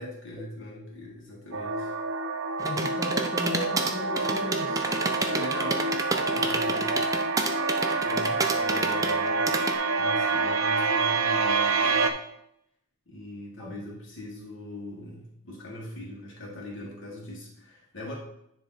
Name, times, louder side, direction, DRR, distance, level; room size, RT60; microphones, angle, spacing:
voice 1, 0.0-1.9 5.2-5.9 6.2-7.0 8.0-9.4 10.0-12.1 13.1-18.1, left 1 dB, 60° left, -2 dB, 2.0 m, -40 dB
sound 1, 1.5-12.1, right 4 dB, 65° right, 0.6 m, -27 dB
voice 2, 2.6-4.8 13.6-13.7, left 1 dB, 5° left, -5 dB, 1.4 m, -35 dB
sound 2, 2.6-9.7, right 3 dB, 15° right, 0.5 m, -29 dB
Wind instrument woodwind instrument, 3.1-11.0, right 2 dB, 45° right, 0.9 m, -44 dB
9.8 x 3.4 x 4.0 m, 0.76 s
head